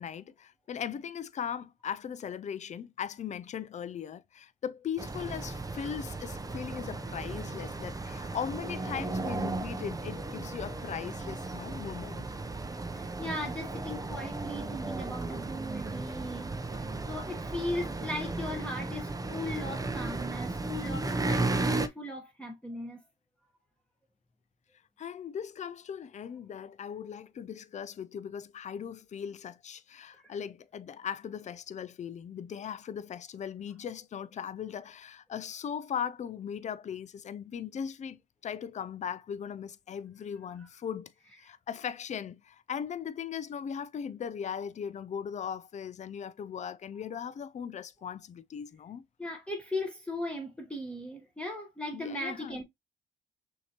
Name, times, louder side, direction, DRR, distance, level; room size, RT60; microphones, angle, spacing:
voice 1, 0.0-12.2 25.0-49.0 51.9-52.6, left 8 dB, 35° left, 0.4 m, -39 dB
sound 1, 5.0-21.9, right 2 dB, 20° right, 0.6 m, -35 dB
voice 2, 12.9-23.0 30.1-30.3 49.2-52.6, left 1 dB, 5° left, 1.2 m, -38 dB
6.2 x 2.8 x 2.9 m
cardioid pair, 90°, 20 cm